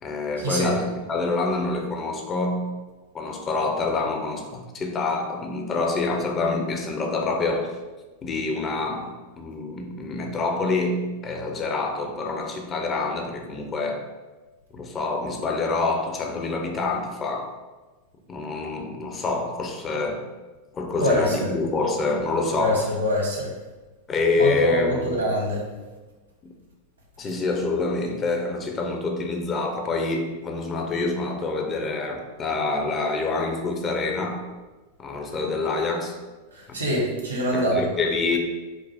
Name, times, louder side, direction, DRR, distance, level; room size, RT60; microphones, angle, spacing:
voice 1, 0.0-2.7 3.1-7.7 8.2-14.0 14.7-17.5 18.3-20.3 20.7-22.9 24.1-25.3 26.4-26.5 27.2-34.5 35.0-36.2 36.7-36.8 37.5-38.4, left 3 dB, 25° left, 3 dB, 0.6 m, -26 dB
voice 2, 21.0-21.5 22.5-23.5 24.4-25.6 36.5-37.8, equal, 75° right, -2 dB, 1.2 m, -24 dB
5.1 x 2.0 x 3.4 m, 1.2 s
figure-of-eight pair, 90°, 0 cm